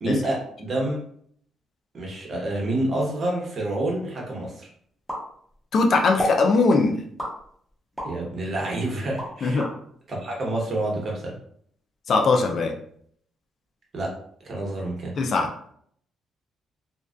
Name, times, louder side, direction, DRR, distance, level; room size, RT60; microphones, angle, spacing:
voice 1, 0.0-1.0 1.9-4.7 8.0-9.7 10.1-11.3 13.9-14.1 14.4-15.1, right 1 dB, 45° right, -2 dB, 0.9 m, -28 dB
sound 1, 5.1-5.8 6.2-6.5 7.2-8.2 8.7-9.7, equal, ahead, 1.0 m, -31 dB
voice 2, 5.7-7.0 9.4-9.6 12.1-12.7 15.2-15.5, left 3 dB, 55° left, 3 dB, 0.4 m, -20 dB
2.4 x 2.3 x 2.4 m, 0.64 s
cardioid pair, 90°, 0 cm